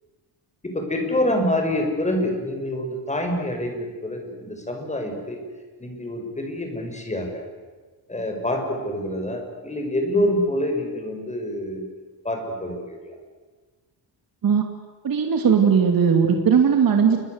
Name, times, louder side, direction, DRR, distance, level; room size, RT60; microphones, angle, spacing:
voice 1, 0.6-5.4 5.8-7.4 8.1-11.8 12.2-13.2, left 1 dB, 15° left, 3 dB, 6.2 m, -26 dB
voice 2, 15.0-17.2, right 6 dB, 50° right, 4 dB, 2.8 m, -18 dB
29.0 x 23.0 x 8.1 m, 1.4 s
cardioid pair, 135°, 43 cm